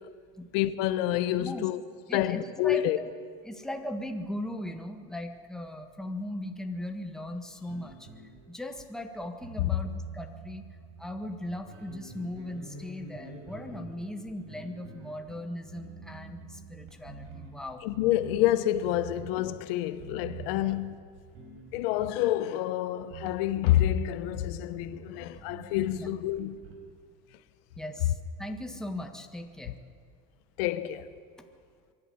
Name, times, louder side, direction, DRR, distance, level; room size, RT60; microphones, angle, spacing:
voice 1, 0.5-1.8 2.1-3.0 17.8-20.9 21.7-26.6 30.6-31.0, left 13 dB, 85° left, 1.0 m, -28 dB
voice 2, 2.1-3.1 3.4-8.1 8.5-10.6 11.0-17.8 20.6-20.8 25.9-26.1 27.8-29.8 31.4-31.5, left 1 dB, ahead, 1.6 m, -38 dB
sound 1, 7.6-22.6 23.1-26.7, right 4 dB, 65° right, 4.8 m, -47 dB
23.5 x 12.0 x 9.6 m
cardioid pair, 130°, 29 cm